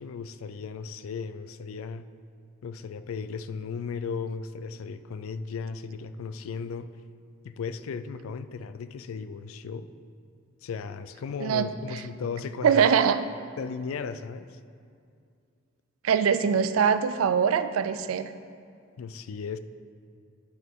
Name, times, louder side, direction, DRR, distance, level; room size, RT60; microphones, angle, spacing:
voice 1, 0.0-2.1 2.6-6.9 7.4-9.9 10.6-13.1 13.6-14.6 19.0-19.6, left 5 dB, 80° left, 12 dB, 0.4 m, -36 dB
voice 2, 11.4-11.7 12.6-13.2 16.0-18.3, right 7 dB, 80° right, 12 dB, 0.4 m, -22 dB
10.0 x 5.8 x 3.7 m, 2.3 s
head